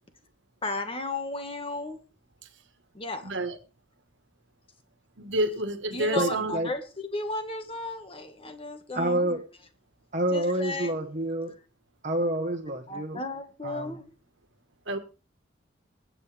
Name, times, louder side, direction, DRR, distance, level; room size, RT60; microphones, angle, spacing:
voice 1, 0.6-2.0 2.9-3.3 5.9-9.4 10.3-10.9 12.9-14.1, left 2 dB, 30° left, 1.8 m, -34 dB
voice 2, 3.2-3.6 5.2-6.6 14.9-15.0, right 1 dB, 75° right, 1.6 m, -29 dB
voice 3, 6.2-6.7 8.9-9.5 10.1-11.6 12.0-13.2 13.6-14.0, right 1 dB, 40° right, 1.3 m, -28 dB
23.0 x 8.7 x 3.5 m
head